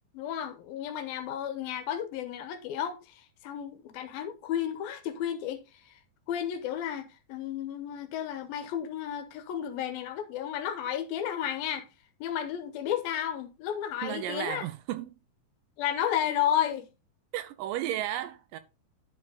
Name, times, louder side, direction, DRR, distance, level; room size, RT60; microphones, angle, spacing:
voice 1, 0.1-5.6 5.9-6.0 6.3-11.9 12.2-14.7 15.8-16.9, left 10 dB, 85° left, 2.8 m, -32 dB
voice 2, 14.0-15.2 17.3-18.6, right 13 dB, 80° right, 2.0 m, -34 dB
10.5 x 5.4 x 3.8 m
omnidirectional pair, 4.2 m